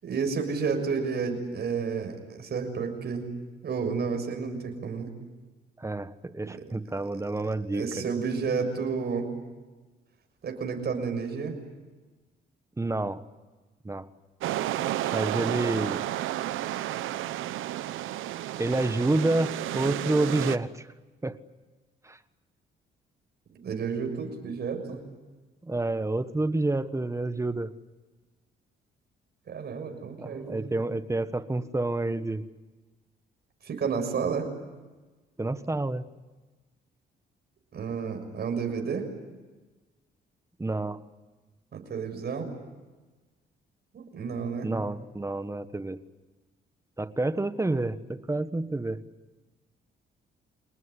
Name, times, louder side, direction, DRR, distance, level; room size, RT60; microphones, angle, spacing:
voice 1, 0.0-3.3 3.6-5.1 6.4-6.6 7.7-9.3 10.4-11.6 23.5-25.0 29.5-30.7 33.6-34.5 37.7-39.1 41.7-42.5 43.9-44.7, right 5 dB, 55° right, 4 dB, 6.6 m, -31 dB
voice 2, 5.8-8.0 12.8-13.2 13.8-14.1 15.1-16.0 18.6-20.9 21.2-21.4 22.0-22.2 25.6-27.7 30.2-32.4 35.4-36.0 40.6-41.0 44.6-46.0 47.0-49.0, right 2 dB, 15° right, 12 dB, 1.4 m, -29 dB
sound 1, 14.4-20.6, right 13 dB, 85° right, 1.0 m, -31 dB
27.5 x 19.5 x 9.8 m, 1.2 s
cardioid pair, 90°, 20 cm